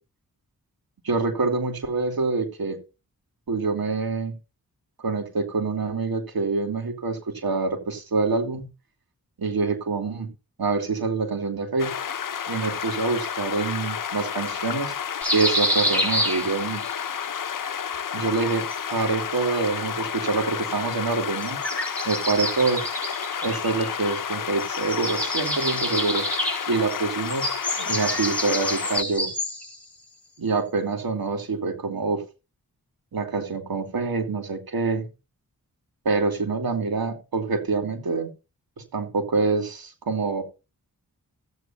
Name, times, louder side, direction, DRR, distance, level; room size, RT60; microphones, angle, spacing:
voice 1, 1.0-2.8 3.5-4.3 5.0-8.7 9.4-10.3 10.6-11.9 12.5-15.0 15.3-16.8 18.1-21.6 22.0-22.9 23.4-26.3 26.7-29.3 30.4-32.2 33.1-35.0 36.0-38.3 38.9-40.4, right 4 dB, 80° right, 2.8 m, -26 dB
sound 1, 11.8-29.0, left 8 dB, 60° left, 0.8 m, -31 dB
sound 2, 15.2-17.0 18.4-19.4 21.4-24.3 24.6-29.8, equal, 5° left, 5.8 m, -28 dB
15.0 x 8.9 x 2.8 m
cardioid pair, 60°, 36 cm